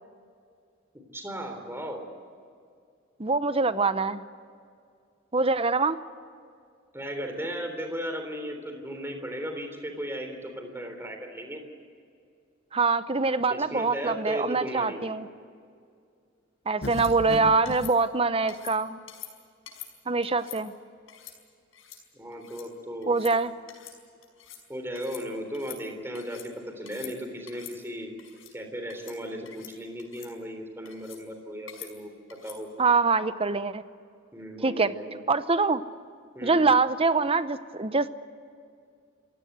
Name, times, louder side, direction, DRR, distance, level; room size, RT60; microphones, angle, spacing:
voice 1, 1.1-2.0 6.9-11.6 13.5-15.0 22.1-23.1 24.7-28.1 28.5-32.1 32.4-33.0 34.3-35.2 36.3-36.7, equal, 10° right, 5 dB, 3.5 m, -36 dB
voice 2, 3.2-4.2 5.3-6.0 12.7-15.3 16.7-19.0 20.1-20.7 23.1-23.5 32.8-33.8 34.6-34.9 35.3-35.8 36.4-38.1, right 4 dB, 30° right, 13 dB, 0.8 m, -24 dB
sound 1, 16.8-17.1 17.7-17.9 18.5-18.8 19.1-19.3 19.7-19.9 20.2-20.6 21.1-21.4 21.7-22.0 22.3-22.7 23.0-23.3 23.7-24.0 24.2-24.6 25.0-25.2 25.5-26.5 26.8-27.1 27.5-27.8 28.2-28.5 28.9-29.2 29.5-29.7 30.0-30.3 30.9-31.2 31.7-31.9 32.3-32.6, left 10 dB, 80° left, 5.5 m, -45 dB
sound 2, 16.8-17.9, left 2 dB, 50° left, 0.9 m, -36 dB
27.5 x 17.0 x 8.0 m, 2.3 s
head